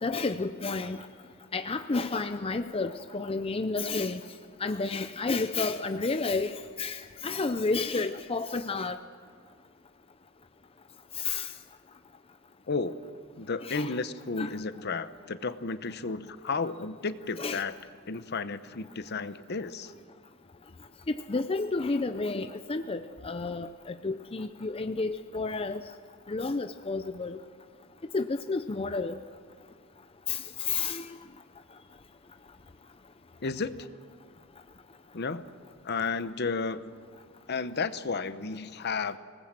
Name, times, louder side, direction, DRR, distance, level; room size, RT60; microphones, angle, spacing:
voice 1, 0.0-1.0 1.5-4.2 4.6-9.0 11.2-11.5 13.6-14.0 14.4-14.5 17.4-17.6 21.1-25.8 26.3-27.4 28.1-29.2 30.3-31.0, left 3 dB, 25° left, 9 dB, 0.6 m, -31 dB
voice 2, 13.4-17.7 18.1-19.9 33.4-33.9 35.1-35.4 35.8-36.9 37.5-39.2, left 4 dB, 55° left, 13 dB, 0.9 m, -33 dB
26.0 x 19.0 x 7.6 m, 2.1 s
head